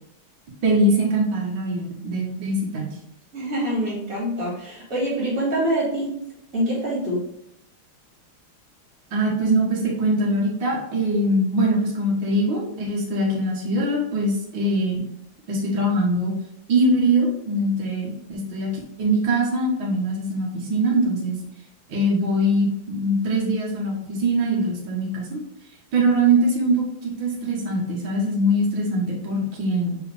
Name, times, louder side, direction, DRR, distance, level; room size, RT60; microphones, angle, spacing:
voice 1, 0.6-2.9 9.1-15.0 15.5-16.3 16.7-18.7 19.0-21.4 21.9-25.4 25.9-30.0, right 1 dB, 60° right, -3 dB, 2.1 m, -22 dB
voice 2, 3.3-6.1 6.5-7.2, right 1 dB, 40° right, -6 dB, 3.1 m, -25 dB
6.1 x 4.7 x 3.4 m, 0.80 s
omnidirectional pair, 2.4 m